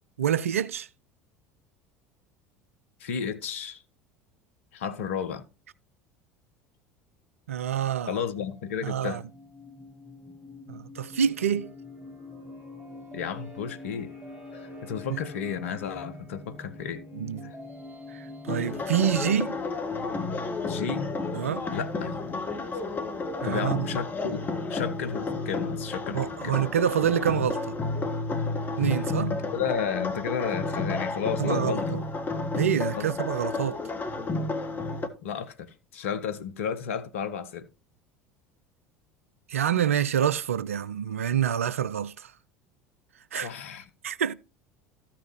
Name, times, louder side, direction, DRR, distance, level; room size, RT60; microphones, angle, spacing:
voice 1, 0.2-0.9 7.5-8.2 8.8-9.2 10.7-11.7 15.1-15.2 17.1-17.5 18.1-19.6 21.3-21.6 23.4-23.9 26.1-27.7 28.8-29.3 31.4-32.0 32.5-33.8 39.5-42.3 43.3-43.5 44.0-44.3, right 9 dB, 75° right, 0.4 m, -27 dB
voice 2, 3.0-3.8 4.7-5.4 8.0-9.2 13.1-14.1 14.5-17.0 17.4-17.6 20.7-21.1 21.7-22.5 22.7-22.8 23.4-26.6 29.3-32.0 32.9-33.1 35.2-37.7 43.3-43.9, left 7 dB, 65° left, 0.9 m, -33 dB
sound 1, 8.4-19.7, left 2 dB, 15° right, 5.0 m, -45 dB
sound 2, 18.5-35.1, left 3 dB, 25° left, 1.4 m, -31 dB
14.0 x 5.8 x 3.0 m
figure-of-eight pair, 70°, 8 cm